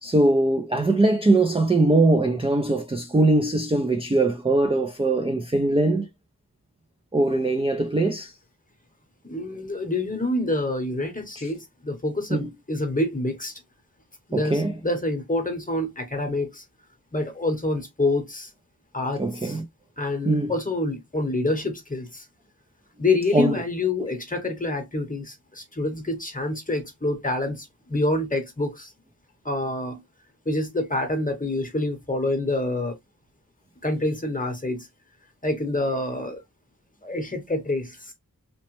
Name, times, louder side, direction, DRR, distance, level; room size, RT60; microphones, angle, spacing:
voice 1, 0.0-6.1 7.1-8.3 11.4-11.5 12.3-12.5 14.3-14.7 19.2-19.7 20.3-20.5 23.3-23.6, right 2 dB, 15° right, 0.3 m, -21 dB
voice 2, 9.2-13.5 14.3-16.6 17.1-18.5 18.9-19.6 20.0-22.2 23.0-28.9 29.4-30.0 30.4-33.0 33.8-34.9 35.4-36.4 37.0-38.1, left 2 dB, 20° left, 0.9 m, -27 dB
2.9 x 2.1 x 2.9 m
wide cardioid pair, 50°, 37 cm